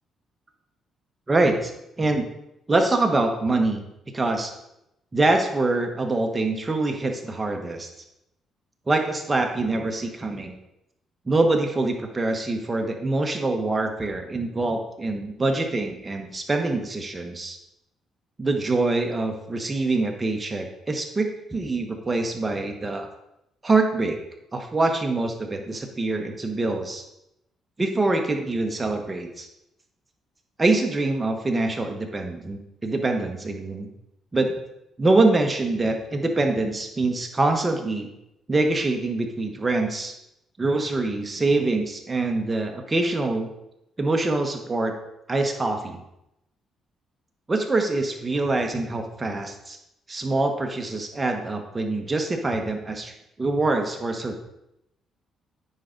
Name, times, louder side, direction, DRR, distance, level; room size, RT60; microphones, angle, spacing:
voice 1, 1.3-1.7 2.0-2.2 2.7-3.8 4.1-4.5 5.1-7.9 8.9-10.6 11.3-17.6 18.4-23.1 23.6-24.2 24.5-27.0 27.8-29.5 30.6-33.9 34.3-34.5 35.0-38.1 38.5-40.1 40.6-43.5 44.0-44.9 45.3-46.0 47.5-49.8 50.1-53.1 53.4-54.4, right 2 dB, 25° right, 4 dB, 1.3 m, -24 dB
9.5 x 5.0 x 4.0 m, 0.85 s
cardioid pair, 90°, 0 cm